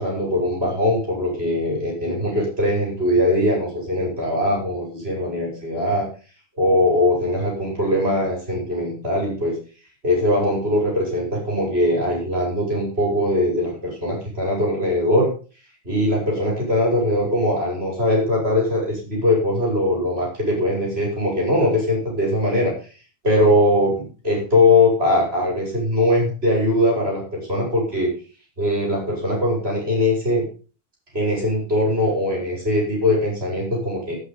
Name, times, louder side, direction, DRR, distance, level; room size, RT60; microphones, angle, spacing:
voice 1, 0.0-6.1 6.6-9.5 10.0-15.3 15.8-22.7 23.2-28.1 28.6-30.4 31.1-34.2, left 1 dB, 70° right, -2 dB, 6.2 m, -21 dB
18.0 x 6.2 x 5.2 m, 0.37 s
omnidirectional pair, 1.1 m